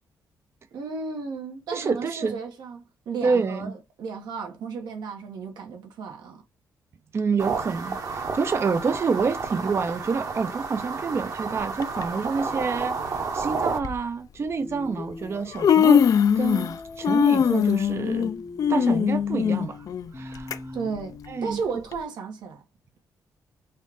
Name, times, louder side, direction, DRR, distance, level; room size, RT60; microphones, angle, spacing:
voice 1, 0.7-6.4 20.7-22.6, right 5 dB, 85° right, 1.2 m, -34 dB
voice 2, 1.7-2.4 3.2-3.7 7.1-18.3 18.7-19.9 20.1-20.8 21.3-21.8, right 5 dB, 35° right, 0.5 m, -28 dB
sound 1, 7.4-13.8, right 4 dB, 55° right, 1.0 m, -31 dB
Human voice, 11.8-12.0 13.1-13.2 13.8-14.0 15.0-15.1 15.4-16.8 17.0-20.6 21.0-21.1 21.9-22.0, left 8 dB, 55° left, 0.4 m, -21 dB
sound 2, 14.6-15.4 16.5-21.6, left 3 dB, 25° left, 0.8 m, -41 dB
4.2 x 2.5 x 3.5 m
cardioid pair, 95°, 7 cm